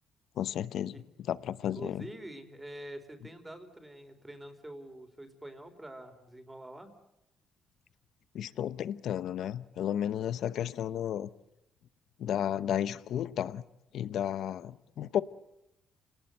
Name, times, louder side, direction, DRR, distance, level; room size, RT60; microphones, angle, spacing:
voice 1, 0.4-1.0 1.3-2.1 8.3-11.3 12.2-13.6 13.9-15.2, left 10 dB, 75° left, 0.8 m, -33 dB
voice 2, 1.6-6.9, right 1 dB, 15° right, 4.0 m, -46 dB
28.0 x 19.0 x 7.9 m
cardioid pair, 90°, 0 cm